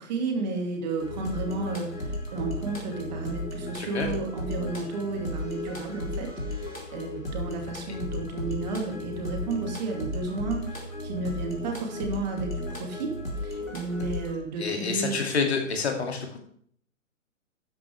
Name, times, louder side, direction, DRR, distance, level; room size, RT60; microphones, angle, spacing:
voice 1, 0.0-15.2, right 3 dB, 35° right, 2 dB, 2.4 m, -32 dB
sound 1, 1.0-14.4, left 1 dB, 80° left, 3.8 m, -35 dB
voice 2, 3.8-4.1 14.6-16.4, left 5 dB, 55° left, 3 dB, 2.7 m, -28 dB
12.5 x 10.0 x 3.5 m, 0.62 s
figure-of-eight pair, 130°, 39 cm